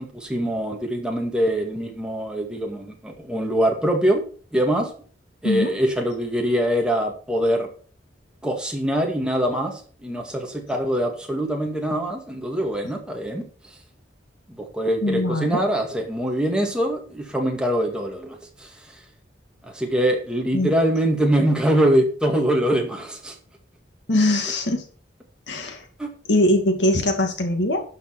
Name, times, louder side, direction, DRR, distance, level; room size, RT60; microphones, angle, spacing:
voice 1, 0.0-4.2 4.5-4.9 5.4-7.7 8.4-13.4 14.5-18.7 19.6-23.3 26.0-26.1, right 1 dB, 5° right, 1 dB, 2.2 m, -23 dB
voice 2, 15.0-15.6 20.5-20.7 24.1-24.8 25.5-25.8 26.3-27.8, left 1 dB, 75° left, 5 dB, 2.3 m, -21 dB
12.0 x 5.5 x 5.9 m, 0.42 s
head